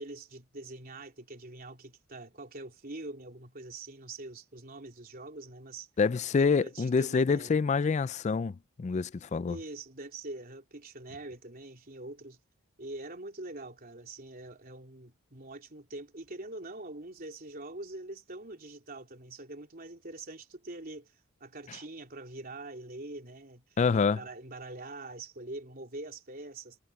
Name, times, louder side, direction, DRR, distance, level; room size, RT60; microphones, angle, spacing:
voice 1, 0.0-5.9 6.4-7.6 9.5-12.4 12.8-21.1 21.4-23.6 23.9-26.8, right 2 dB, 45° right, 3.5 m, -44 dB
voice 2, 6.0-9.6 23.8-24.2, left 5 dB, 35° left, 0.3 m, -27 dB
head